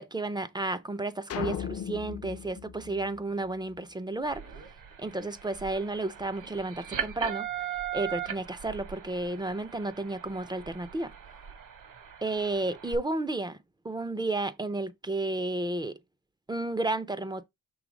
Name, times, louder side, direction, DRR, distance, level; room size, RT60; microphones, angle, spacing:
voice 1, 0.0-4.4 5.0-7.7 7.9-11.1 12.2-13.6 13.8-15.9 16.5-17.5, right 2 dB, 15° right, 0.4 m, -32 dB
sound 1, 1.3-3.7, left 8 dB, 45° left, 0.5 m, -37 dB
sound 2, 4.2-12.9, right 9 dB, 65° right, 1.3 m, -39 dB
6.2 x 3.3 x 4.9 m
cardioid pair, 145°, 34 cm